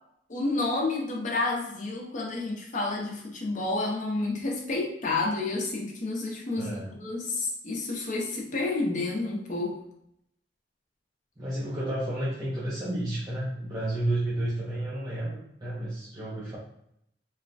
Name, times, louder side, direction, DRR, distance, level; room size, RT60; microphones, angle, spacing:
voice 1, 0.3-6.7 7.0-9.8, left 2 dB, 45° left, 0 dB, 0.6 m, -30 dB
voice 2, 6.6-6.9 11.4-16.6, right 1 dB, 25° right, -9 dB, 0.5 m, -31 dB
3.1 x 2.1 x 2.5 m, 0.75 s
head